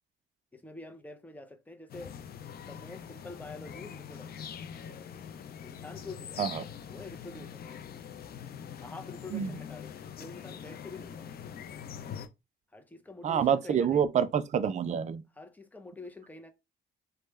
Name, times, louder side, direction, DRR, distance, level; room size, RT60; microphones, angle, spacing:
voice 1, 0.5-2.2 2.7-4.5 5.6-6.5 6.9-7.9 8.8-11.3 12.7-14.1 15.4-16.5, left 3 dB, 10° left, 0.6 m, -46 dB
sound 1, 1.9-12.3, left 8 dB, 50° left, 0.5 m, -43 dB
voice 2, 13.2-15.2, right 8 dB, 35° right, 0.4 m, -27 dB
3.2 x 2.1 x 3.2 m
cardioid pair, 90°, 20 cm